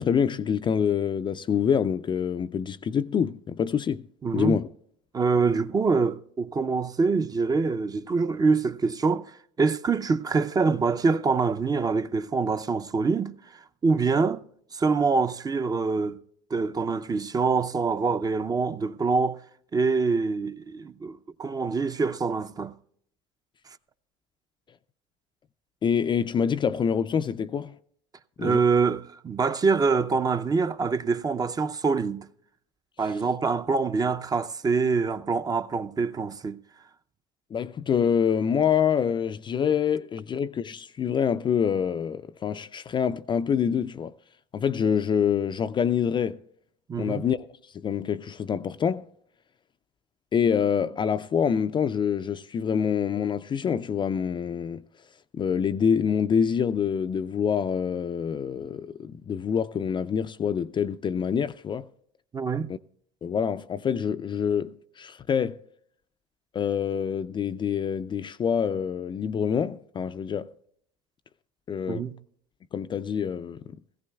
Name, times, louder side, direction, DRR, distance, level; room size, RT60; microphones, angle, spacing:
voice 1, 0.0-4.1 4.3-4.7 25.8-27.8 28.4-28.6 33.0-33.1 37.5-44.1 44.5-46.4 47.0-49.1 50.3-54.9 55.3-61.9 62.7-62.8 63.2-65.6 66.5-70.5 71.7-72.1 72.7-73.8, left 7 dB, 25° left, 0.4 m, -26 dB
voice 2, 4.2-4.6 5.1-13.3 13.8-14.4 14.7-16.2 16.5-19.4 19.7-22.7 28.4-32.2 33.0-36.6 46.9-47.2 62.3-62.7 71.9-72.1, right 4 dB, 20° right, 0.5 m, -25 dB
17.5 x 15.0 x 2.3 m
supercardioid pair, 95°, 18 cm